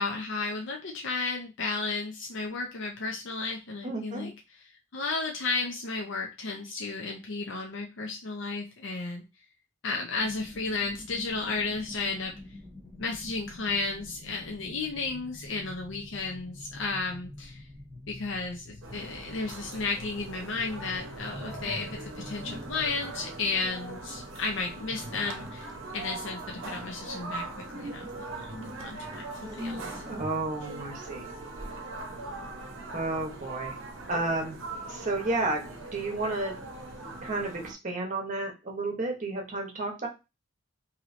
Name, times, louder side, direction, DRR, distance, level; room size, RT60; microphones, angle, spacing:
voice 1, 0.0-9.2 9.8-12.3 13.0-17.6 18.1-27.5 27.7-30.0, left 3 dB, 65° left, 1 dB, 0.6 m, -33 dB
voice 2, 3.8-4.3 30.1-31.3 32.9-33.7 34.1-34.6 34.9-36.6 37.2-40.1, right 2 dB, 40° right, 1 dB, 0.8 m, -32 dB
sound 1, 10.2-23.0, left 1 dB, 15° left, 0.7 m, -47 dB
sound 2, 18.8-37.7, right 2 dB, 75° right, 0.7 m, -41 dB
sound 3, 20.1-22.1 22.4-24.3 24.9-26.0 27.7-30.7, equal, 20° right, 0.4 m, -45 dB
3.1 x 2.8 x 2.5 m, 0.27 s
head